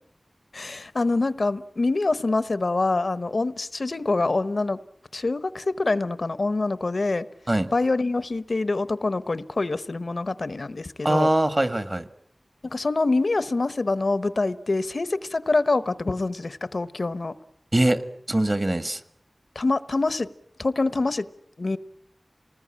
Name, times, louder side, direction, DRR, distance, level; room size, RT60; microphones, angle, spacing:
voice 1, 0.5-4.8 5.1-7.3 7.7-11.3 12.6-17.3 19.5-20.3 20.6-21.3 21.6-21.8, left 3 dB, 70° left, 15 dB, 1.0 m, -25 dB
voice 2, 11.0-12.1 17.7-18.0 18.3-19.0, right 1 dB, 35° right, 11 dB, 1.7 m, -22 dB
27.5 x 20.0 x 8.7 m, 0.75 s
wide cardioid pair, 65°, 0 cm